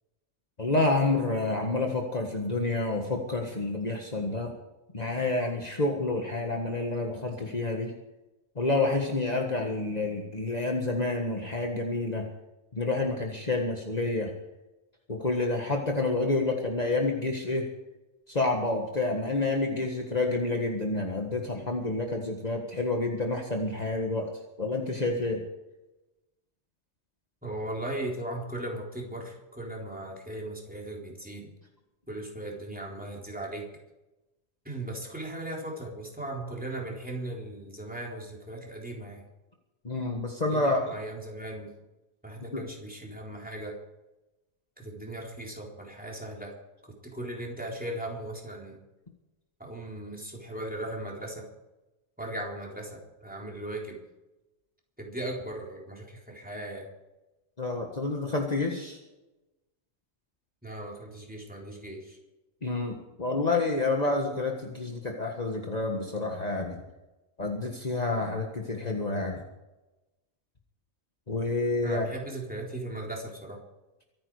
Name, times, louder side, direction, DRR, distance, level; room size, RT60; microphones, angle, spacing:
voice 1, 0.6-4.5 4.9-7.9 8.6-12.3 12.7-14.3 15.1-17.7 18.3-24.3 24.6-25.4 39.8-40.8 42.5-42.6 57.6-59.0 62.6-66.8 67.4-69.4 71.3-72.0, left 2 dB, 40° left, 1 dB, 1.7 m, -29 dB
voice 2, 27.4-31.5 32.1-33.7 34.6-39.2 40.5-41.7 42.2-43.8 44.8-46.5 46.8-48.8 49.6-51.5 52.2-54.0 55.0-56.9 60.6-62.2 71.8-73.6, right 1 dB, 10° right, -2 dB, 3.9 m, -38 dB
24.0 x 9.5 x 4.9 m, 1.0 s
omnidirectional pair, 1.1 m